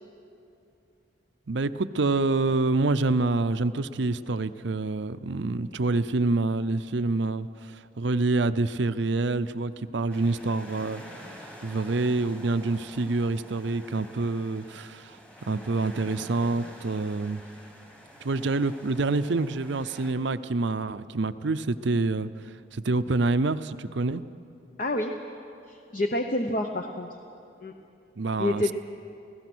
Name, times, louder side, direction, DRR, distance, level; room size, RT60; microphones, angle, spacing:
voice 1, 1.5-11.3 11.6-15.2 15.5-17.4 18.2-24.2 28.2-28.7, right 3 dB, 65° right, 13 dB, 0.6 m, -27 dB
sound 1, 10.1-20.1, equal, 5° left, 1.6 m, -48 dB
voice 2, 24.8-25.1 25.7-27.1 27.6-27.7 28.4-28.7, left 1 dB, 40° left, 5 dB, 0.8 m, -28 dB
28.0 x 16.5 x 6.2 m, 2.7 s
head